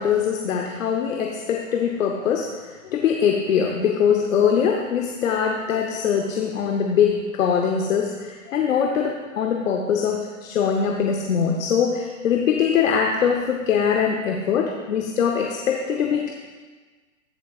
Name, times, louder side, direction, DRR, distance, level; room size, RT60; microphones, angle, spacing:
voice 1, 0.0-16.3, left 7 dB, 75° left, 2 dB, 1.0 m, -22 dB
15.0 x 6.9 x 2.5 m, 1.4 s
hypercardioid pair, 155°, 40 cm